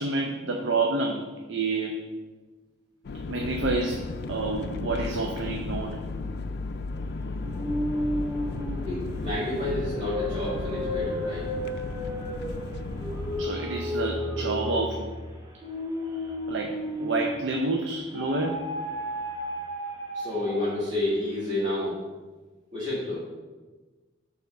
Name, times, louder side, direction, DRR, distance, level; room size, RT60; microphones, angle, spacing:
voice 1, 0.0-2.0 3.3-6.0 13.4-15.1 16.1-18.6, right 3 dB, 90° right, 1 dB, 0.6 m, -29 dB
sound 1, 3.0-13.5, left 3 dB, 60° left, 0.4 m, -34 dB
sound 2, 7.4-17.6 18.1-20.9, left 1 dB, 20° right, 1.7 m, -33 dB
voice 2, 8.7-11.4 20.1-22.0 22.7-23.2, left 1 dB, 45° right, -11 dB, 1.9 m, -30 dB
6.8 x 3.6 x 5.3 m, 1.3 s
head